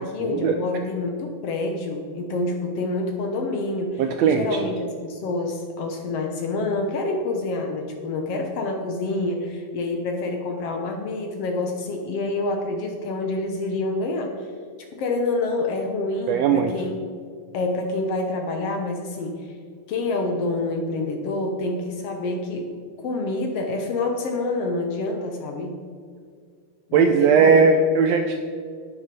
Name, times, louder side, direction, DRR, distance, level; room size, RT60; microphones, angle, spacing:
voice 1, 0.0-14.5 15.0-17.0 17.5-19.5 19.9-22.7 23.0-25.8 26.9-27.7, left 2 dB, 65° left, 3 dB, 1.7 m, -27 dB
voice 2, 4.0-4.6 16.3-16.7 26.9-28.4, right 5 dB, 80° right, 6 dB, 1.5 m, -18 dB
10.5 x 9.4 x 5.3 m, 2.1 s
omnidirectional pair, 3.6 m